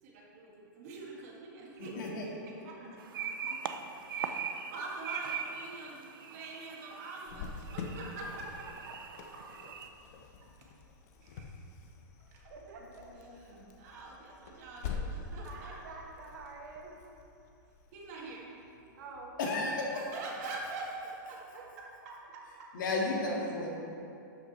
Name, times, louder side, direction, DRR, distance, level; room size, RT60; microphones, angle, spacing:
voice 1, 0.0-8.7 9.3-9.5 10.4-10.7 11.2-11.6 12.3-12.5 13.2-15.9 17.9-18.5 19.9-21.4 22.1-22.7, right 3 dB, 45° right, -2 dB, 1.9 m, -45 dB
voice 2, 1.8-2.2 2.9-3.0 3.4-3.5 12.8-13.7 19.4-19.9 22.7-23.7, left 2 dB, 65° left, -2 dB, 2.0 m, -34 dB
sound 1, 3.0-9.9, right 7 dB, 80° right, 0.6 m, -41 dB
Cricket, 7.3-18.7, left 4 dB, 45° left, 0.9 m, -45 dB
voice 3, 8.9-9.2 12.5-13.4 15.4-17.0 19.0-19.6 21.5-21.7, right 3 dB, 65° right, -1 dB, 1.8 m, -48 dB
12.5 x 5.9 x 4.3 m, 2.7 s
hypercardioid pair, 160°, 11 cm